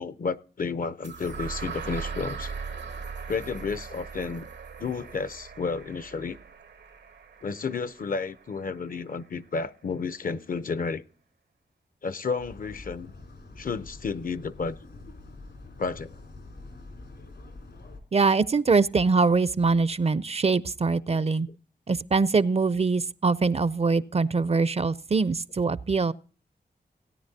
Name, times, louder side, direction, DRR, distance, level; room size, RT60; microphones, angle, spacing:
voice 1, 0.0-2.5 3.3-4.5 4.8-6.4 7.4-11.0 12.0-13.1 13.6-14.8 15.8-16.1 21.1-21.3, left 5 dB, 50° left, 0.6 m, -32 dB
sound 1, 1.0-9.0, right 5 dB, 80° right, 0.9 m, -39 dB
sound 2, 12.4-18.0, left 2 dB, 80° left, 3.3 m, -46 dB
voice 2, 18.1-21.5 21.9-26.1, right 4 dB, 35° right, 0.5 m, -23 dB
17.0 x 9.6 x 2.7 m
cardioid pair, 55°, 18 cm